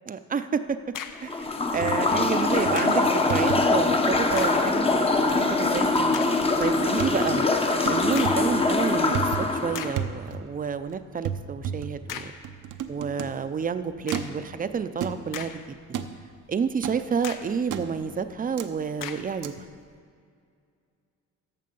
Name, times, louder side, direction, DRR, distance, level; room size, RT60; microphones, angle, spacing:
voice 1, 0.1-0.8 1.2-1.5 1.7-6.2 6.6-7.4 7.9-12.3 12.9-15.8 16.5-19.7, right 6 dB, 25° right, 11 dB, 0.5 m, -29 dB
sound 1, 0.7-1.4 2.8-3.1 4.3-4.7 5.3-5.4 6.1-6.4 8.1-8.5 9.2-9.3 9.7-10.1 12.1-12.5 14.1-14.4 15.1-15.9 16.3-16.4 17.2-17.6 19.0-19.4, left 8 dB, 85° left, 0.7 m, -39 dB
sound 2, 1.2-9.9, left 3 dB, 20° left, 0.7 m, -23 dB
sound 3, 1.4-2.4 2.6-2.9 3.3-3.8 4.1-4.5 4.9-5.4 5.7-6.1 6.4-7.1 7.9-8.5 9.0-9.6 10.0-10.6 10.8-10.9 11.2-13.5 14.1-14.5 15.0-15.4 15.9-16.2 16.8-17.1 17.7-18.0 18.6-18.7 19.4-19.5, right 8 dB, 75° right, 0.7 m, -34 dB
14.0 x 6.0 x 5.4 m, 2.2 s
cardioid pair, 120°, 31 cm